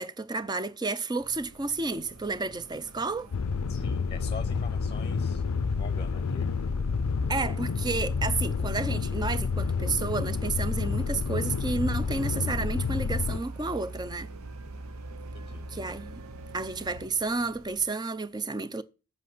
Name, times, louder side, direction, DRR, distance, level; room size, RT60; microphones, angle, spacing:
voice 1, 0.0-3.3 7.3-14.3 15.7-16.2 16.5-18.8, right 3 dB, 20° right, 0.5 m, -31 dB
sound 1, 1.2-17.9, right 1 dB, 70° right, 1.1 m, -53 dB
sound 2, 2.1-17.1, right 3 dB, 85° right, 0.8 m, -46 dB
voice 2, 3.2-5.4 5.8-6.6 15.3-16.0, left 4 dB, 25° left, 0.8 m, -45 dB
sound 3, 3.3-13.4, left 5 dB, 85° left, 0.5 m, -29 dB
8.1 x 6.0 x 7.5 m
head